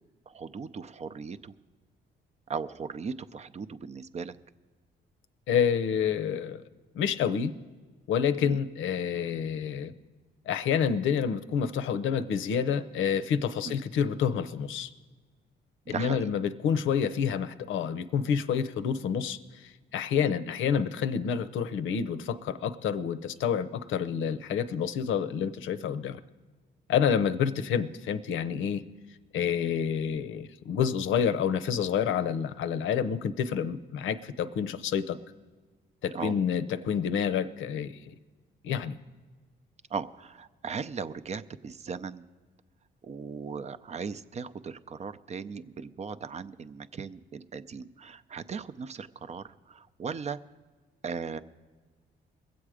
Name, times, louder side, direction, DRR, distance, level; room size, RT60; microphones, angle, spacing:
voice 1, 0.3-1.5 2.5-4.4 8.4-8.6 13.7-13.8 15.9-16.3 20.2-20.3 27.1-27.2 36.1-36.4 39.9-42.2 43.0-50.4 51.0-51.4, right 5 dB, 35° right, 12 dB, 0.5 m, -38 dB
voice 2, 5.5-6.6 6.9-7.5 8.1-9.9 10.5-14.9 15.9-26.2 26.9-28.8 29.3-35.2 36.0-38.1 38.6-38.9, left 7 dB, 75° left, 12 dB, 0.7 m, -28 dB
21.5 x 7.9 x 4.9 m, 1.4 s
cardioid pair, 90°, 20 cm